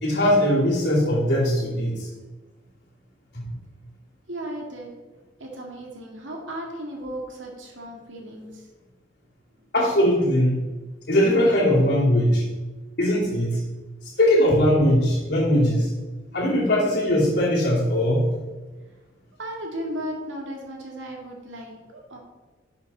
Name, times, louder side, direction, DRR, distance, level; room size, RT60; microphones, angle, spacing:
voice 1, 0.0-2.1 3.3-3.4 9.7-10.6 11.1-12.4 13.0-13.6 14.0-15.9 16.3-18.4, equal, 60° left, -8 dB, 2.8 m, -20 dB
voice 2, 4.3-4.9 5.4-8.7 9.6-9.7 19.4-22.2, right 1 dB, 85° right, 0 dB, 2.2 m, -35 dB
11.5 x 6.9 x 4.2 m, 1.2 s
head